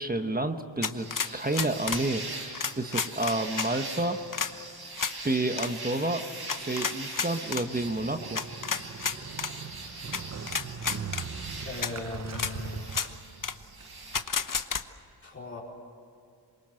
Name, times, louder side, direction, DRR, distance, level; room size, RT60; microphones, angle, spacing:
voice 1, 0.0-2.2 2.8-4.2 5.2-6.2 6.6-8.4, right 2 dB, 20° right, 6 dB, 1.1 m, -29 dB
sound 1, 0.8-2.0 2.5-3.7 4.3-4.5 5.0-5.1 5.5-5.7 6.5-7.6 8.3-9.5 10.1-10.2 10.5-11.2 11.8-11.9 12.3-12.5 12.9-13.1 13.4-13.5 14.1-14.8, left 6 dB, 45° left, 1.0 m, -31 dB
sound 2, 1.0-14.2, right 2 dB, 60° right, 6.6 m, -42 dB
Motorcycle, 7.7-14.5, right 6 dB, 40° right, 0.8 m, -41 dB
voice 2, 11.6-13.0 15.2-15.6, left 3 dB, 30° left, -4 dB, 4.6 m, -38 dB
26.5 x 23.5 x 7.8 m, 2.6 s
wide cardioid pair, 130°, 43 cm